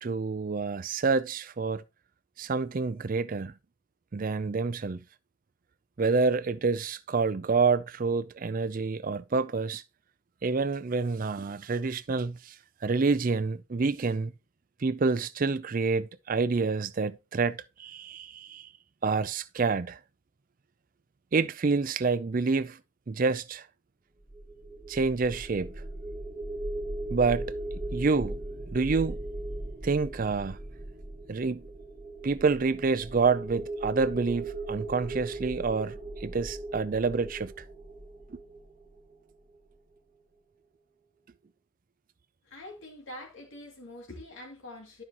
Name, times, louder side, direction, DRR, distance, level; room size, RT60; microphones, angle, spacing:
voice 1, 0.0-1.8 2.4-3.5 4.1-5.0 6.0-9.8 10.4-12.5 12.8-14.3 14.8-18.7 19.0-20.0 21.3-22.8 23.1-23.6 24.9-25.7 27.1-27.5 27.9-28.4 28.7-29.2 29.8-30.6 31.3-31.6 32.2-37.6 38.3-38.4, right 4 dB, 40° right, 0.4 m, -28 dB
sound 1, 24.2-39.3, right 2 dB, 20° right, 1.0 m, -38 dB
voice 2, 42.4-45.0, left 1 dB, 65° left, 2.6 m, -45 dB
12.0 x 5.5 x 2.9 m
head